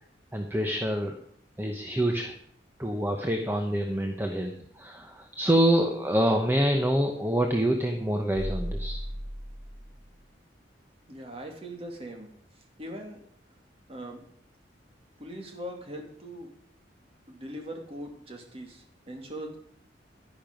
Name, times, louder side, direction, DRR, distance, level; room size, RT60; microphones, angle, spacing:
voice 1, 0.3-1.2 1.6-2.3 2.8-9.0, equal, 10° right, 4 dB, 0.9 m, -26 dB
sound 1, 8.3-10.2, equal, 60° right, 1.5 m, -35 dB
voice 2, 11.1-13.2 13.9-14.2 15.2-16.5 17.3-19.6, equal, 35° right, 2 dB, 2.5 m, -41 dB
11.0 x 10.5 x 5.2 m, 0.65 s
head